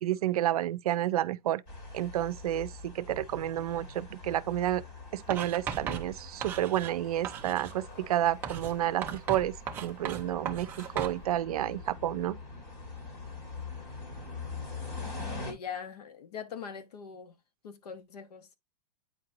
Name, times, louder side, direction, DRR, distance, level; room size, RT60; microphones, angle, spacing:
voice 1, 0.0-1.6 1.9-4.8 5.1-9.5 9.8-12.4, right 12 dB, 65° right, 0.6 m, -30 dB
sound 1, 1.7-15.5, left 3 dB, 35° left, 2.6 m, -44 dB
Writing, 5.3-7.0 7.2-7.8 8.4-11.2, right 7 dB, 10° right, 0.4 m, -37 dB
voice 2, 15.4-17.4 17.6-18.6, left 7 dB, 70° left, 1.3 m, -42 dB
9.1 x 4.5 x 2.5 m
supercardioid pair, 170°, 21 cm